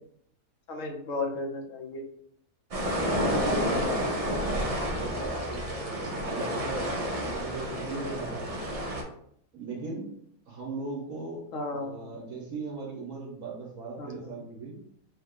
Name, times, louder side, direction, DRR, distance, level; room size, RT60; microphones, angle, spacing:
voice 1, 0.7-2.1 3.8-4.4 11.5-12.2 14.0-14.4, left 2 dB, 70° left, 3 dB, 1.0 m, -35 dB
sound 1, 2.7-9.0, equal, 50° right, 0.4 m, -30 dB
voice 2, 2.8-3.9 4.3-8.5 9.5-10.1 10.5-14.8, right 3 dB, 75° right, -3 dB, 1.3 m, -39 dB
4.1 x 2.1 x 3.6 m, 0.67 s
omnidirectional pair, 1.5 m